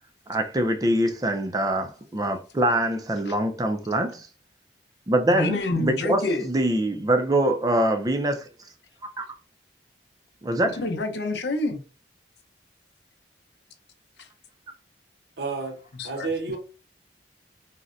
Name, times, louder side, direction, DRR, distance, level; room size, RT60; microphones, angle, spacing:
voice 1, 0.3-4.3 5.1-8.5 9.2-9.3 10.4-10.8, right 1 dB, 20° right, 0.4 m, -24 dB
voice 2, 5.3-6.5 10.6-11.8 14.2-14.3 15.9-16.3, left 2 dB, 75° left, 0.6 m, -28 dB
voice 3, 15.4-16.6, right 4 dB, 65° right, 0.7 m, -31 dB
3.9 x 2.1 x 2.5 m
head